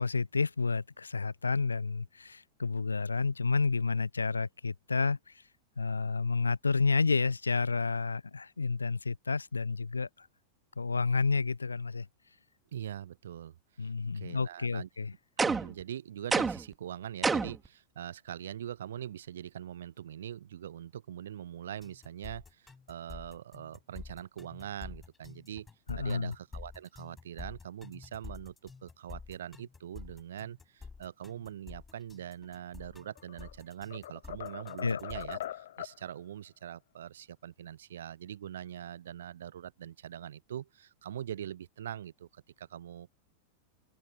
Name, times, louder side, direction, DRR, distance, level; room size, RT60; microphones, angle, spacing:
voice 1, 0.0-5.2 5.8-10.3 10.8-12.1 13.8-15.1 25.9-26.3 34.8-35.0, left 4 dB, 75° left, 0.8 m, -30 dB
voice 2, 12.7-14.9 15.4-25.7 26.0-43.1, right 10 dB, 60° right, 2.1 m, -43 dB
sound 1, 15.4-15.8 16.3-16.7 17.2-17.7, right 4 dB, 15° right, 0.7 m, -28 dB
sound 2, 21.8-35.4, left 4 dB, 15° left, 1.2 m, -48 dB
sound 3, 33.0-33.5 33.9-36.0, left 12 dB, 60° left, 1.6 m, -41 dB
figure-of-eight pair, 90°, 0 cm